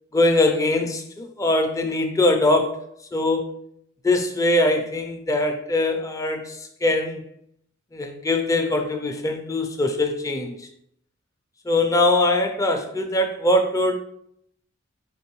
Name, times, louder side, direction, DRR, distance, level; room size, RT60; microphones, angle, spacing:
voice 1, 0.1-2.8 3.1-3.5 4.0-7.2 7.9-10.7 11.7-13.9, left 2 dB, 15° left, 5 dB, 0.4 m, -22 dB
4.4 x 3.4 x 3.0 m, 0.71 s
head